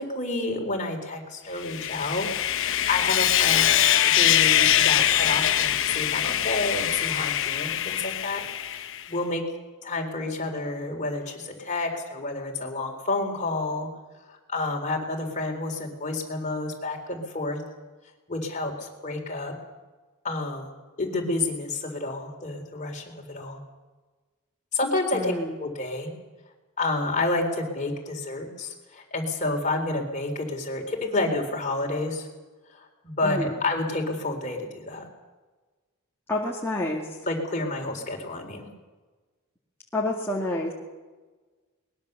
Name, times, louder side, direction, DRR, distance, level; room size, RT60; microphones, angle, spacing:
voice 1, 0.0-2.3 2.6-9.4 9.8-13.9 14.3-17.6 18.3-19.5 20.2-20.7 21.0-23.6 24.7-25.3 25.6-26.1 26.8-32.3 32.7-35.1 37.3-38.7, left 2 dB, 35° left, 2 dB, 3.9 m, -30 dB
Sawing, 1.6-9.0, left 11 dB, 60° left, 1.0 m, -23 dB
voice 2, 25.1-25.6 33.2-33.6 36.3-37.0 39.9-40.7, left 1 dB, 10° left, -4 dB, 2.2 m, -28 dB
21.5 x 20.5 x 6.8 m, 1.3 s
head